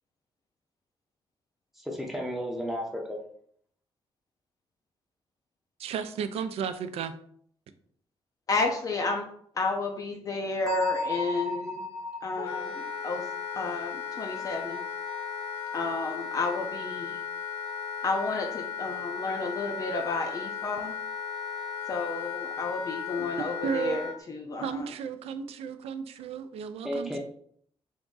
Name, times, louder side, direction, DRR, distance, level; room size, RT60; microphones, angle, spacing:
voice 1, 1.8-3.2 26.8-27.2, equal, 5° right, -1 dB, 0.6 m, -33 dB
voice 2, 5.8-7.1 23.2-23.3 23.6-24.0 24.6-27.2, right 7 dB, 80° right, 10 dB, 0.4 m, -33 dB
voice 3, 8.5-9.2 9.6-11.8 12.2-13.2 13.6-14.8 15.7-17.2 18.0-20.9 21.9-24.8, left 3 dB, 35° left, 2 dB, 0.4 m, -31 dB
Bell, 10.7-14.3, left 2 dB, 35° right, 0.9 m, -35 dB
Wind instrument woodwind instrument, 12.4-24.2, left 7 dB, 75° left, 0.9 m, -36 dB
3.5 x 2.5 x 3.8 m, 0.62 s
wide cardioid pair, 145°, 10 cm